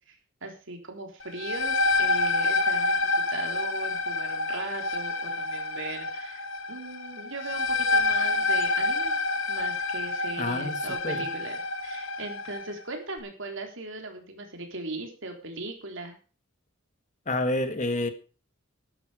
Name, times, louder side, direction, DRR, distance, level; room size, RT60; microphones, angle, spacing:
voice 1, 0.4-9.1 9.5-16.2, right 2 dB, 60° right, 4 dB, 3.5 m, -39 dB
sound 1, 1.2-12.7, left 3 dB, 65° left, 1.7 m, -28 dB
voice 2, 10.4-11.2 17.3-18.1, left 2 dB, 35° left, 9 dB, 1.5 m, -29 dB
12.5 x 11.5 x 5.0 m, 0.36 s
head